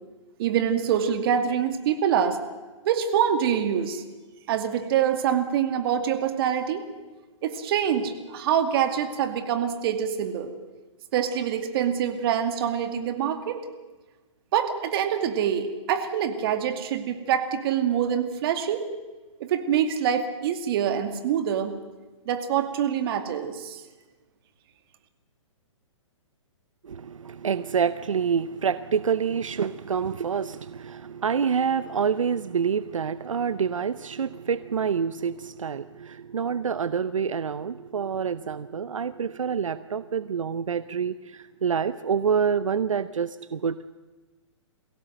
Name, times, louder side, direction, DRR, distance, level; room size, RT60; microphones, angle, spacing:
voice 1, 0.4-2.4 2.8-4.0 4.5-6.9 7.4-10.5 11.1-13.6 14.5-18.9 19.4-21.8 22.3-23.8, right 8 dB, 50° right, 7 dB, 2.4 m, -25 dB
voice 2, 26.8-43.8, right 6 dB, 85° right, 15 dB, 0.7 m, -27 dB
23.0 x 16.5 x 7.9 m, 1.3 s
hypercardioid pair, 135°, 16 cm